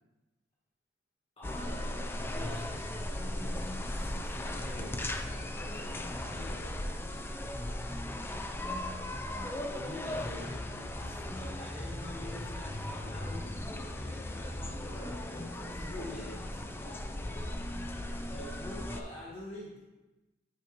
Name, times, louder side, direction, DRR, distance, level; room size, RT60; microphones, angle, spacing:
voice 1, 1.4-6.6 9.3-15.3 15.7-17.8 18.2-19.8, left 1 dB, 30° left, -6 dB, 1.4 m, -47 dB
sound 1, 1.4-19.0, left 1 dB, 10° left, 0.3 m, -37 dB
voice 2, 5.6-8.3 15.2-15.8, equal, 50° left, -2 dB, 1.7 m, -52 dB
9.2 x 5.0 x 2.9 m, 1.1 s
head